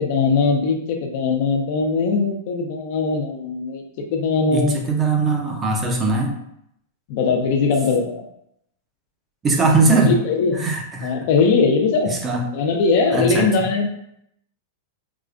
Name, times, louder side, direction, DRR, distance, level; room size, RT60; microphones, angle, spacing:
voice 1, 0.0-3.8 4.1-4.8 7.1-8.2 10.0-10.6 11.0-12.1 12.5-13.9, left 4 dB, 50° left, 4 dB, 0.5 m, -20 dB
voice 2, 4.5-6.3 9.4-10.1 10.6-11.1 12.2-12.4 13.1-13.5, right 3 dB, 15° right, 1 dB, 0.5 m, -20 dB
4.8 x 2.2 x 2.4 m, 0.75 s
supercardioid pair, 160°, 0 cm